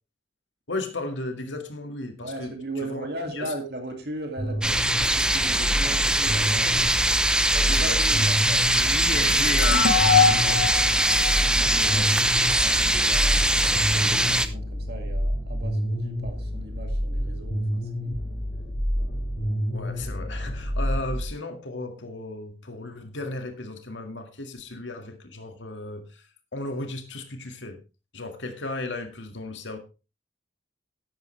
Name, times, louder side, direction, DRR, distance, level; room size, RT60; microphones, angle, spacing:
voice 1, 0.7-2.5 2.8-3.1 3.3-3.5 7.7-8.3 11.6-12.2 19.7-26.2 26.5-27.8 28.1-29.8, left 2 dB, 80° left, 5 dB, 2.0 m, -35 dB
voice 2, 2.2-6.9 7.5-10.6 11.4-12.1 12.6-18.1, right 1 dB, 55° right, 4 dB, 2.3 m, -37 dB
sound 1, 4.4-21.2, equal, 50° left, 4.9 m, -29 dB
sound 2, 4.6-14.5, right 1 dB, 5° right, 0.7 m, -22 dB
sound 3, 9.1-12.5, left 6 dB, 65° left, 1.4 m, -24 dB
13.5 x 11.0 x 3.3 m, 0.31 s
head